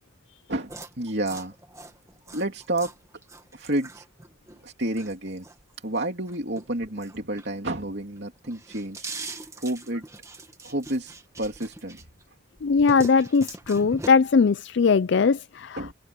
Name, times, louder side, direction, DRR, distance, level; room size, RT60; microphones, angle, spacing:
voice 1, 0.5-1.5 2.3-2.9 3.5-4.0 4.6-5.4 5.8-9.3 9.6-10.0 10.6-12.0 12.9-13.0 15.8-15.9, right 1 dB, 55° right, 3.1 m, -30 dB
sound 1, 0.7-7.8 8.2-12.2 12.6-14.1, right 2 dB, 15° right, 1.7 m, -42 dB
voice 2, 12.6-15.8, left 5 dB, 60° left, 0.4 m, -20 dB
open air
head